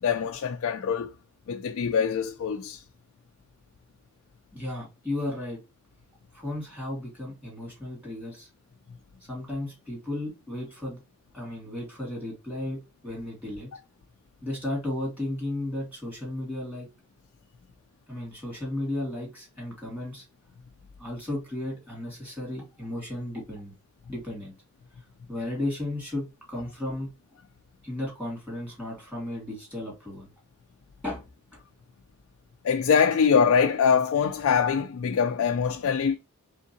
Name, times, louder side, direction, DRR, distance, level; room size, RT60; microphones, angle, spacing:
voice 1, 0.0-1.1 1.5-2.8 32.6-36.2, left 6 dB, 65° left, 0.3 m, -23 dB
voice 2, 4.5-5.6 6.3-8.5 9.2-11.0 11.3-12.8 13.0-13.7 14.4-16.9 18.1-20.3 21.0-23.7 24.1-24.5 25.3-27.1 27.8-30.3 31.0-31.6, left 1 dB, 5° right, 2.2 m, -34 dB
3.6 x 3.5 x 2.7 m
head